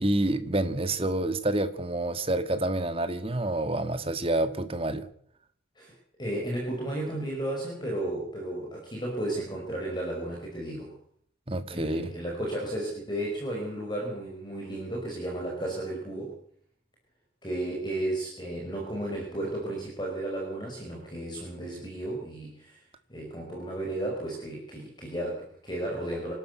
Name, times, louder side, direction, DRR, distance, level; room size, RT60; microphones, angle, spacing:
voice 1, 0.0-5.1 11.5-12.1, right 1 dB, 30° right, 1.8 m, -28 dB
voice 2, 6.2-10.9 11.7-16.4 17.4-22.8 23.1-26.3, right 1 dB, 20° left, 5.5 m, -33 dB
27.0 x 12.5 x 8.2 m
head